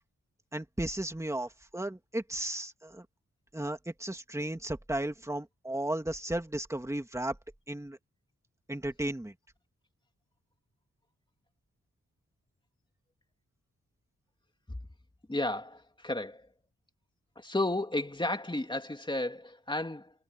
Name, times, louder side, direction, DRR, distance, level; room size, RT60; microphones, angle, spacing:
voice 1, 0.5-3.0 3.5-7.4 7.7-8.0 8.7-9.3, right 1 dB, 10° right, 2.8 m, -34 dB
voice 2, 15.3-16.5 17.4-20.1, left 2 dB, 15° left, 2.8 m, -33 dB
wide cardioid pair, 90°, 29 cm